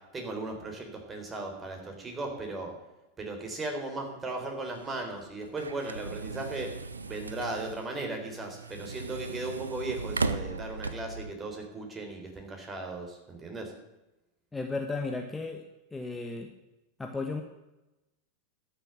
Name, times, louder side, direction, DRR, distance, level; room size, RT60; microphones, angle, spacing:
voice 1, 0.1-2.7 3.2-6.7 7.0-13.7, right 2 dB, 20° right, 3 dB, 4.1 m, -37 dB
sound 1, 4.7-11.3, right 3 dB, 90° right, 0.7 m, -37 dB
voice 2, 14.5-15.6 15.9-16.5 17.0-17.4, left 3 dB, 10° left, 4 dB, 1.3 m, -34 dB
13.0 x 7.1 x 8.9 m, 0.99 s
hypercardioid pair, 90°, 0 cm